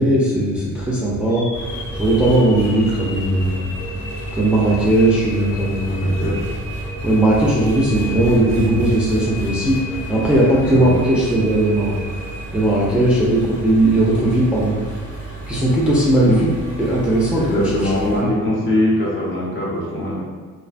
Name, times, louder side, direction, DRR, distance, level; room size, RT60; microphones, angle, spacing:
voice 1, 0.0-1.5 2.0-3.7 4.3-6.2 7.0-12.0 12.5-14.8 15.5-16.5 16.8-17.9 18.2-18.3, right 1 dB, 5° right, -6 dB, 0.4 m, -18 dB
sound 1, 1.3-13.4, left 1 dB, 85° left, 0.5 m, -35 dB
Engine, 1.5-18.2, right 1 dB, 65° left, 1.3 m, -31 dB
voice 2, 5.9-6.6 10.7-11.0 16.2-16.4 17.3-20.2, left 1 dB, 40° left, -5 dB, 0.8 m, -22 dB
2.5 x 2.1 x 2.4 m, 1.4 s
cardioid pair, 90°, 30 cm